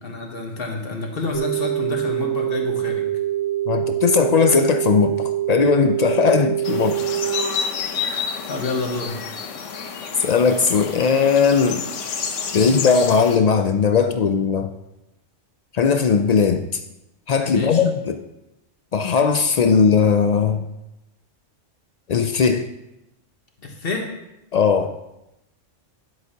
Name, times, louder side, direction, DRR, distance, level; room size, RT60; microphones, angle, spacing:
voice 1, 0.0-3.1 8.0-9.4 17.5-17.8 23.6-24.1, left 3 dB, 50° left, 2 dB, 1.3 m, -29 dB
sound 1, 1.3-7.4, right 12 dB, 30° right, 2.6 m, -24 dB
voice 2, 3.7-7.0 10.2-11.8 12.5-14.7 15.7-16.8 17.3-18.2 18.9-20.6 22.1-22.7 24.5-24.9, left 6 dB, 70° left, 7 dB, 0.3 m, -18 dB
sound 2, 6.6-13.4, left 6 dB, 85° left, 1.1 m, -29 dB
9.6 x 8.0 x 2.8 m, 0.90 s
omnidirectional pair, 1.2 m